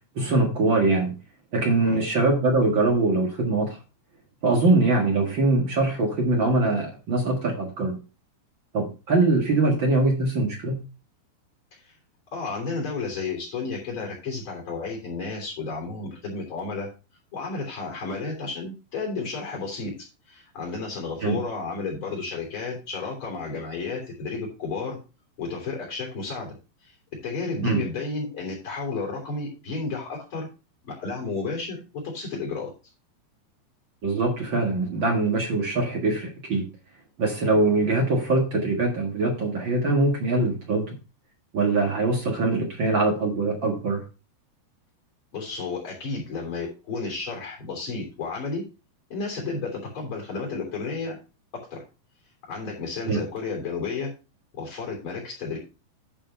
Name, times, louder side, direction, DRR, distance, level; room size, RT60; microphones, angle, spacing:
voice 1, 0.1-1.1 1.5-3.8 4.4-8.0 8.7-10.8 21.2-21.4 27.6-27.8 34.0-36.7 37.2-40.9 41.5-44.0 53.1-53.2, right 2 dB, 65° right, 1 dB, 1.1 m, -23 dB
voice 2, 12.3-16.9 17.3-19.9 20.3-25.0 25.4-26.5 26.8-26.9 27.2-30.5 30.8-32.7 45.3-48.6 49.1-51.2 51.5-51.8 52.5-54.1 54.6-55.6, left 4 dB, 30° left, -1 dB, 3.6 m, -32 dB
10.0 x 4.9 x 5.4 m, 0.31 s
omnidirectional pair, 4.9 m